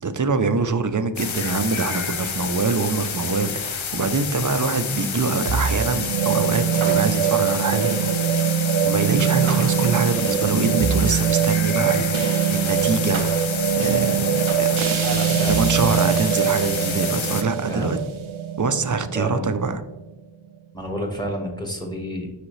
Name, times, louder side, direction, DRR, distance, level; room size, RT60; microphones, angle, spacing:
voice 1, 0.0-8.4 8.8-14.8 15.5-18.0 18.6-19.8, right 4 dB, 40° right, 10 dB, 0.5 m, -24 dB
sound 1, 1.2-17.4, left 7 dB, 75° left, 0.7 m, -29 dB
sound 2, 5.5-19.9, right 9 dB, 80° right, 0.7 m, -23 dB
voice 2, 15.0-16.1 17.7-18.0 19.1-19.6 20.7-22.3, equal, 10° left, 1 dB, 1.5 m, -30 dB
6.2 x 5.0 x 3.2 m, 1.1 s
wide cardioid pair, 45°, 48 cm